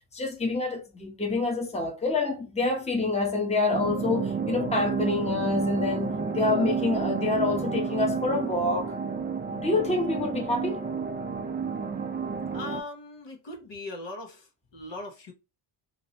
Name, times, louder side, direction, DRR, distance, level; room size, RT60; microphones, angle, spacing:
voice 1, 0.1-8.9 9.5-10.8, left 3 dB, 15° left, 0.9 m, -27 dB
sound 1, 3.7-12.8, right 5 dB, 20° right, 0.4 m, -31 dB
voice 2, 12.5-14.5 14.7-15.3, left 2 dB, 60° left, 1.2 m, -39 dB
2.9 x 2.8 x 2.8 m
cardioid pair, 80°, 49 cm